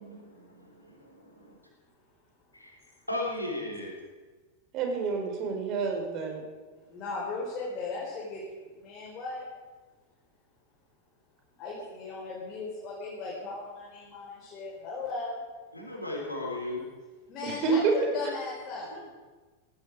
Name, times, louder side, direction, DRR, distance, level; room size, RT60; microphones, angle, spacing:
voice 1, 0.0-1.5 2.5-2.8 3.1-4.0 15.7-16.8 18.8-19.0, left 1 dB, 85° left, 0 dB, 4.6 m, -36 dB
voice 2, 4.7-6.4 17.4-17.9, right 5 dB, 40° right, 3 dB, 4.6 m, -28 dB
voice 3, 6.7-9.5 11.6-15.4 17.3-18.9, left 3 dB, 30° left, -4 dB, 4.9 m, -37 dB
17.5 x 16.0 x 5.0 m, 1.3 s
figure-of-eight pair, 90°, 0 cm